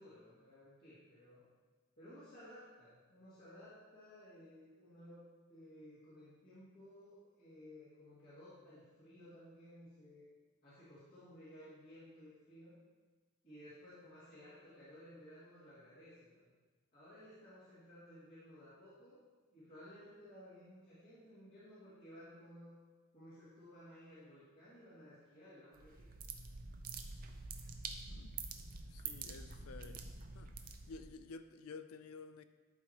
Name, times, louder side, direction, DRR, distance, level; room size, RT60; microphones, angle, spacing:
voice 1, 0.0-1.4 2.0-10.2 10.6-12.7 13.4-16.4 16.9-19.2 19.5-22.8 23.1-26.1, equal, 45° left, 2.3 m, -57 dB
sound 1, 25.7-31.2, right 4 dB, 40° right, 0.5 m, -47 dB
voice 2, 28.9-30.1 30.3-30.5 30.9-32.4, left 4 dB, 80° left, 0.4 m, -52 dB
11.5 x 4.7 x 2.9 m
head